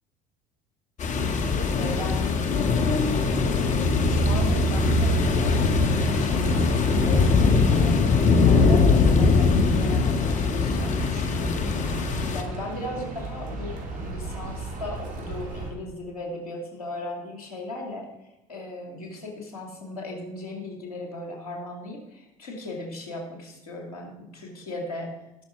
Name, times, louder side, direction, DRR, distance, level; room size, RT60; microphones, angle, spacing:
sound 1, 1.0-12.4, left 4 dB, 40° left, 1.6 m, -21 dB
voice 1, 1.4-2.7 3.0-12.0 12.3-18.1 18.5-25.1, left 2 dB, 90° left, 1 dB, 2.5 m, -37 dB
sound 2, 5.9-15.7, right 3 dB, 45° right, 3.3 m, -36 dB
18.0 x 6.2 x 4.5 m, 0.89 s
hypercardioid pair, 70°, 18 cm